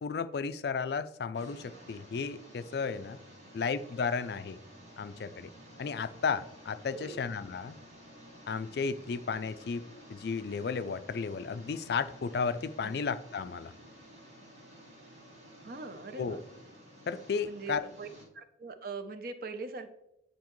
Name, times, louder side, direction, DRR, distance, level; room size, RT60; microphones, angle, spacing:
voice 1, 0.0-3.2 3.5-4.6 5.0-5.5 5.8-7.8 8.5-13.7 16.2-16.4 17.1-17.8, left 5 dB, 60° left, 13 dB, 0.3 m, -34 dB
sound 1, 1.3-18.2, equal, 85° right, 2.4 m, -53 dB
voice 2, 12.8-13.1 15.6-16.4 17.5-18.1 18.3-19.9, right 3 dB, 50° right, 9 dB, 0.6 m, -42 dB
9.3 x 4.3 x 3.1 m, 0.82 s
head